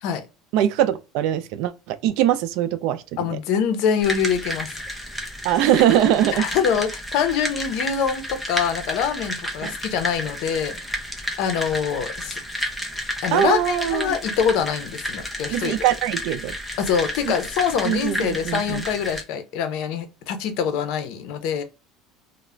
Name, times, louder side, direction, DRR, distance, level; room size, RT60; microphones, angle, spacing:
voice 1, 0.5-3.4 5.4-6.5 9.6-9.7 13.3-14.2 15.5-16.5 17.2-17.3 17.8-18.8, right 11 dB, 70° right, 0.3 m, -22 dB
voice 2, 3.2-4.8 6.4-10.7 11.4-12.4 13.2-15.7 16.8-21.6, left 7 dB, 65° left, 0.6 m, -24 dB
sound 1, 4.0-19.2, equal, ahead, 0.5 m, -31 dB
2.4 x 2.0 x 3.1 m
cardioid pair, 135°, 0 cm